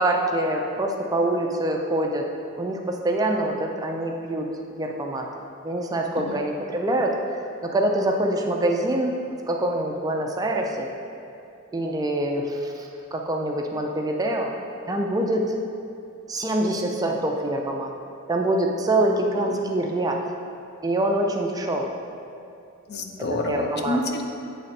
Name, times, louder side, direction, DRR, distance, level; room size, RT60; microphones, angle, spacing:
voice 1, 0.0-2.2 2.6-4.5 4.7-5.3 5.6-7.2 7.6-9.1 9.5-10.9 11.7-14.5 14.9-15.5 16.3-17.9 18.3-20.2 20.8-21.9 23.5-24.0, right 1 dB, 15° right, 1 dB, 0.4 m, -25 dB
voice 2, 19.0-19.7 22.9-24.2, left 1 dB, 50° left, 3 dB, 0.5 m, -30 dB
8.5 x 3.2 x 4.1 m, 2.5 s
head